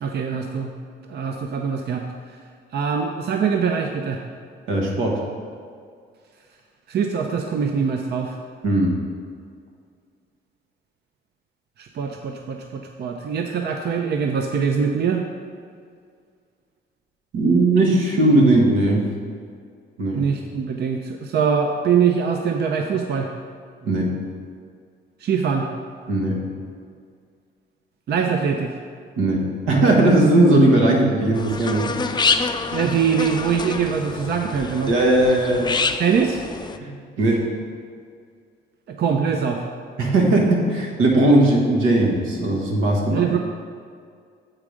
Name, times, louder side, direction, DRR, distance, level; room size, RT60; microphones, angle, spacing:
voice 1, 0.0-0.7 1.1-2.1 2.7-4.2 6.9-8.4 11.8-15.2 20.1-23.3 25.2-25.7 28.1-28.8 32.7-34.9 36.0-36.4 38.9-39.7 43.1-43.4, right 6 dB, 55° right, 3 dB, 0.6 m, -23 dB
voice 2, 4.7-5.2 8.6-8.9 17.3-19.1 20.0-20.2 23.8-24.1 26.1-26.4 29.2-32.0 34.9-35.8 36.8-37.4 40.0-43.2, right 2 dB, 90° right, -1 dB, 1.4 m, -18 dB
sound 1, 31.3-36.8, left 4 dB, 20° left, 0.4 m, -27 dB
7.5 x 4.9 x 5.0 m, 2.1 s
cardioid pair, 90°, 20 cm